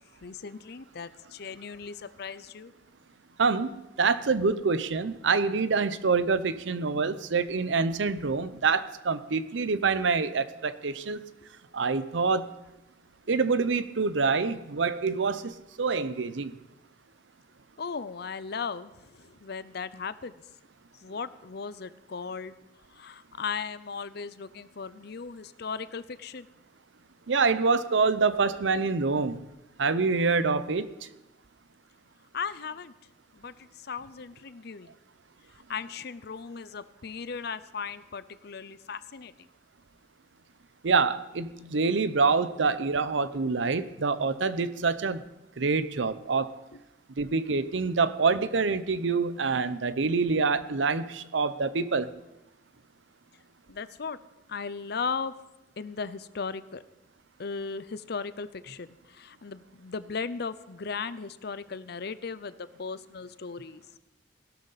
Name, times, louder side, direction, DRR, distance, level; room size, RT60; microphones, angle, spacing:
voice 1, 0.2-2.7 17.8-20.3 20.9-22.5 22.9-26.5 32.3-32.9 33.3-34.9 35.7-39.5 46.7-46.8 53.7-54.2 54.5-55.3 55.8-56.8 57.4-63.8, left 5 dB, 60° left, 15 dB, 0.6 m, -37 dB
voice 2, 3.4-11.2 11.7-12.5 13.3-16.5 27.3-29.4 29.8-30.9 40.8-45.2 45.6-46.5 47.2-52.1, right 4 dB, 80° right, 14 dB, 0.7 m, -26 dB
17.0 x 12.0 x 4.1 m, 0.95 s
head